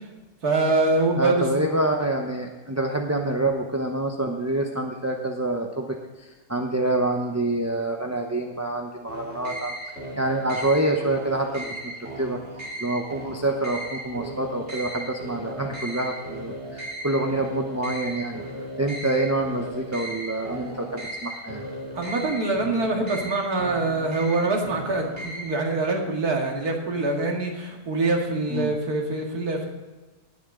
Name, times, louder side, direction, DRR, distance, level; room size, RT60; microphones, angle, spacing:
voice 1, 0.4-1.5 21.9-29.6, right 2 dB, 65° right, 1 dB, 2.5 m, -24 dB
voice 2, 1.2-12.4 12.8-18.4 18.8-21.6 28.5-28.7, right 2 dB, 15° right, 1 dB, 0.6 m, -27 dB
sound 1, 9.1-25.7, right 1 dB, 40° right, 3.0 m, -36 dB
19.0 x 7.2 x 3.8 m, 1.2 s
omnidirectional pair, 1.7 m